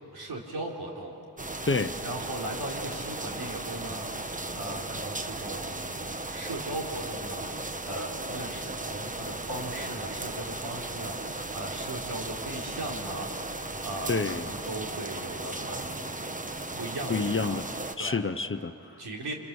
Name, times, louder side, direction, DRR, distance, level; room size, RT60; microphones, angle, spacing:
voice 1, 0.1-1.1 2.0-6.0 6.3-7.5 7.9-16.2 16.8-17.6 18.0-18.2 19.0-19.3, right 1 dB, 80° right, -1 dB, 3.8 m, -38 dB
sound 1, 1.4-17.9, right 2 dB, 20° right, 1.1 m, -36 dB
voice 2, 1.6-2.0 14.1-14.5 17.1-17.6 18.0-19.0, left 4 dB, 35° left, 10 dB, 0.9 m, -28 dB
27.0 x 26.5 x 7.2 m, 2.7 s
cardioid pair, 60°, 38 cm